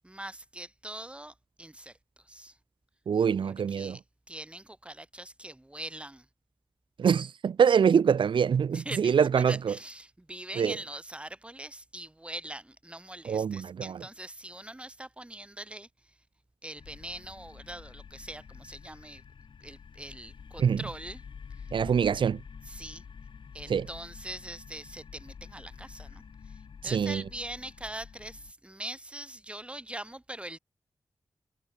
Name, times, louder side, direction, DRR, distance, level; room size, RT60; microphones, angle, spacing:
voice 1, 0.0-2.6 3.4-4.0 4.3-6.3 8.7-16.1 16.6-19.2 19.6-21.2 21.5-21.7 22.6-23.0 23.5-30.6, right 1 dB, 15° right, 4.4 m, -43 dB
voice 2, 3.1-4.0 7.0-9.7 10.6-10.7 13.2-13.9 20.6-20.8 21.7-22.4 23.7-23.9 26.9-27.2, right 7 dB, 80° right, 0.6 m, -24 dB
sound 1, 16.8-28.5, left 6 dB, 90° left, 6.6 m, -48 dB
wide cardioid pair, 130°, 8 cm